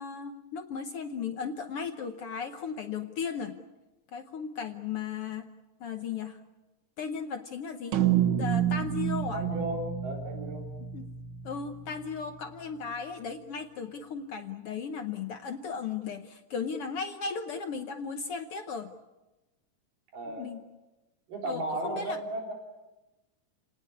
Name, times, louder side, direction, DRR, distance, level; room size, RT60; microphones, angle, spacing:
voice 1, 0.0-3.6 4.1-5.5 5.8-6.4 7.0-8.0 8.4-9.4 10.9-11.1 11.4-18.9 20.4-20.6 21.4-22.2, left 6 dB, 65° left, 7 dB, 1.4 m, -36 dB
sound 1, 7.9-12.4, right 10 dB, 60° right, 1.4 m, -29 dB
voice 2, 9.3-10.7 20.1-20.5 21.3-22.5, right 1 dB, 85° right, 1 dB, 5.3 m, -35 dB
29.0 x 18.5 x 8.6 m, 1.1 s
omnidirectional pair, 3.8 m